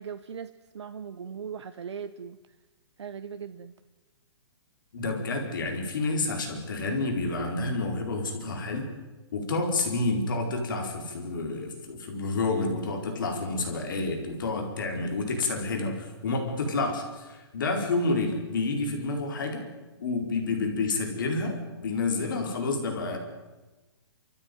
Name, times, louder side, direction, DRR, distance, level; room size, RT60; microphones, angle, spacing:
voice 1, 0.0-2.4 3.0-3.7, right 7 dB, 75° right, 9 dB, 1.2 m, -39 dB
voice 2, 4.9-8.9 9.3-19.6 20.0-23.2, left 3 dB, 45° left, 3 dB, 4.7 m, -29 dB
29.0 x 14.5 x 9.4 m, 1.2 s
hypercardioid pair, 180°, 15 cm